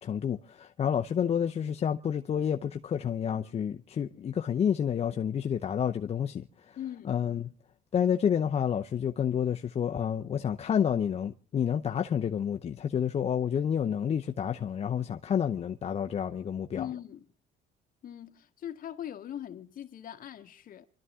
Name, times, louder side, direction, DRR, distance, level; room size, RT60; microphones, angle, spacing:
voice 1, 0.0-6.8 7.1-7.5 7.9-16.9, left 8 dB, 40° left, 0.7 m, -29 dB
voice 2, 6.8-7.2 16.8-17.3 18.0-20.9, left 10 dB, 55° left, 1.6 m, -40 dB
28.5 x 12.5 x 3.6 m
cardioid pair, 110°, 17 cm